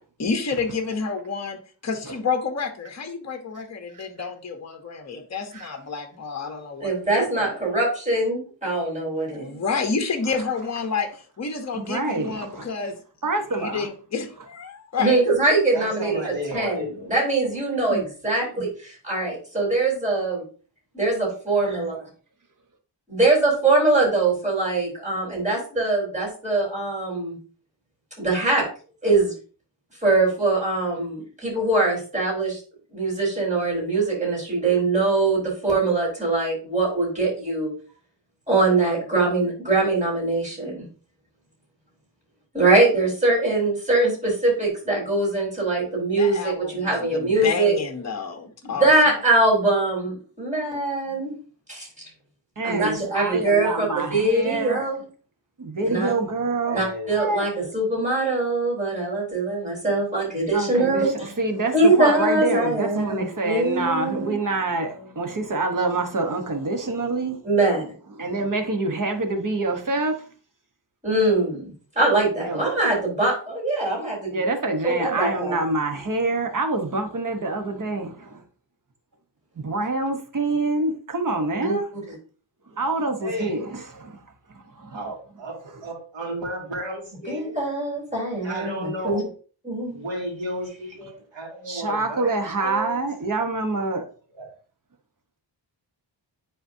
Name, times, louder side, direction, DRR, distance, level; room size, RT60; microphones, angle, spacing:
voice 1, 0.2-6.9 7.3-7.6 9.3-13.0 13.5-15.2 46.2-48.9, left 5 dB, 35° left, 0.9 m, -29 dB
voice 2, 3.9-4.3 5.5-5.7 11.7-12.7 13.2-13.9 17.9-18.0 52.6-54.9 55.6-56.8 57.1-57.5 60.5-67.4 68.2-70.2 72.4-72.7 74.3-78.4 79.6-81.9 82.8-84.2 84.5-85.0 85.7-85.8 91.7-94.1, right 2 dB, 45° right, 1.2 m, -26 dB
voice 3, 6.8-9.6 15.0-16.2 16.5-20.4 20.9-22.0 23.1-27.4 28.2-28.7 29.0-29.3 30.0-32.6 32.9-37.7 38.5-40.8 42.5-47.7 48.6-51.3 51.7-51.9 52.6-55.0 55.8-56.1 56.7-61.3 61.7-64.4 67.4-67.8 71.0-74.4 74.8-75.6 81.6-81.8 87.3-89.2 89.6-90.0, right 2 dB, 15° right, 3.8 m, -22 dB
voice 4, 15.7-17.1 47.0-47.1 51.0-51.2 56.6-57.1 61.9-63.1 63.8-64.0 64.8-65.1 83.2-83.6 84.9-87.6 88.4-89.3 89.9-92.9 94.4-94.5, equal, 85° right, 2.4 m, -33 dB
10.0 x 4.2 x 2.7 m
wide cardioid pair, 155°, 44 cm